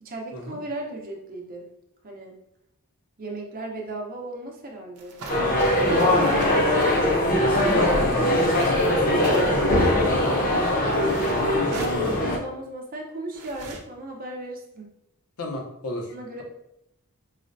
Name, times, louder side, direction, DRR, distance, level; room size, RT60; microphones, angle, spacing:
voice 1, 0.0-1.6 2.0-2.3 3.2-5.9 7.4-8.4 8.7-9.5 11.9-14.9 16.1-16.4, right 2 dB, 40° right, 0 dB, 0.7 m, -36 dB
sound 1, 5.0-7.0 8.2-8.7 9.2-9.7 10.9-11.3 11.7-12.0 13.3-13.8, right 3 dB, 80° right, 0.6 m, -38 dB
sound 2, 5.3-12.4, left 1 dB, 40° left, 0.6 m, -21 dB
voice 2, 7.3-9.4 15.4-16.1, left 1 dB, 80° left, 1 dB, 0.7 m, -31 dB
4.8 x 2.1 x 2.6 m, 0.81 s
head